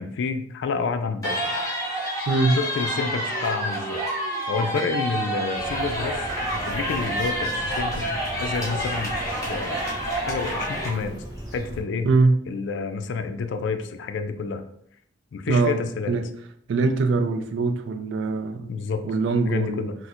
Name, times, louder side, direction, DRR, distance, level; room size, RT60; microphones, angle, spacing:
voice 1, 0.0-1.6 2.6-4.0 4.5-6.3 6.6-9.8 10.3-11.2 11.5-12.1 12.5-14.6 15.3-16.1 18.7-19.0 19.5-19.9, left 4 dB, 65° left, 0.3 m, -29 dB
sound 1, 1.2-10.9, right 1 dB, 15° left, 0.8 m, -28 dB
voice 2, 2.3-2.6 12.0-12.4 15.5-15.8 16.1-16.3 16.7-19.9, right 3 dB, 65° right, 0.3 m, -22 dB
sound 2, 5.5-11.8, equal, 20° right, 0.8 m, -37 dB
4.2 x 2.0 x 2.4 m
head